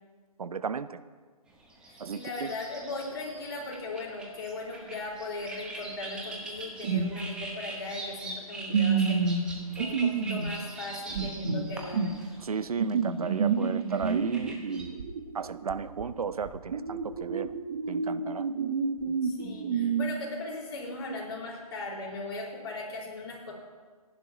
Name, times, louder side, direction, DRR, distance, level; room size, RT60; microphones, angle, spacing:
voice 1, 0.4-1.0 2.0-2.5 12.4-15.1 15.3-17.5 17.9-18.5, right 6 dB, 70° right, 14 dB, 0.6 m, -34 dB
sound 1, 1.5-14.8, right 2 dB, 5° right, 0.8 m, -42 dB
voice 2, 1.9-9.2 9.7-12.0 19.2-23.5, left 2 dB, 40° left, -3 dB, 4.9 m, -38 dB
sound 2, 6.8-7.1 7.4-7.5 8.7-10.5 11.1-12.2 12.8-16.1 16.4-20.0, right 5 dB, 40° right, 1.2 m, -29 dB
27.0 x 11.0 x 3.0 m, 1.5 s
hypercardioid pair, 160°, 19 cm